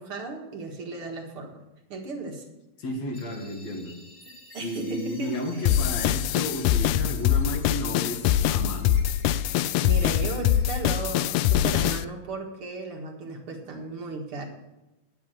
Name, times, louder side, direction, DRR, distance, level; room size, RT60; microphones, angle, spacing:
voice 1, 0.0-1.6 1.9-2.4 4.5-5.8 9.5-14.5, right 3 dB, 50° right, 1 dB, 2.0 m, -36 dB
voice 2, 2.8-4.0 4.6-9.0, left 1 dB, 55° left, 2 dB, 2.7 m, -33 dB
sound 1, 3.1-11.0, left 1 dB, 35° left, 0.8 m, -52 dB
sound 2, 5.7-12.0, left 11 dB, 90° left, 1.7 m, -23 dB
10.5 x 8.4 x 7.6 m, 1.0 s
omnidirectional pair, 3.9 m